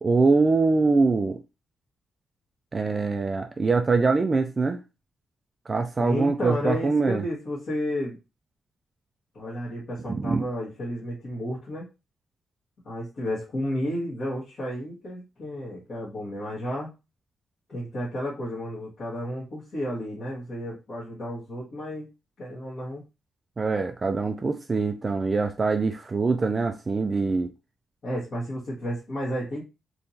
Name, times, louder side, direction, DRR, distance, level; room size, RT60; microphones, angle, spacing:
voice 1, 0.0-1.4 2.7-4.8 5.7-7.2 10.1-10.4 23.6-27.5, right 4 dB, 25° right, 0.3 m, -23 dB
voice 2, 6.0-8.2 9.3-11.9 12.8-16.9 17.7-22.1 22.4-23.0 28.0-29.6, equal, 45° left, 1.5 m, -32 dB
3.5 x 2.9 x 2.7 m
wide cardioid pair, 150°, 0 cm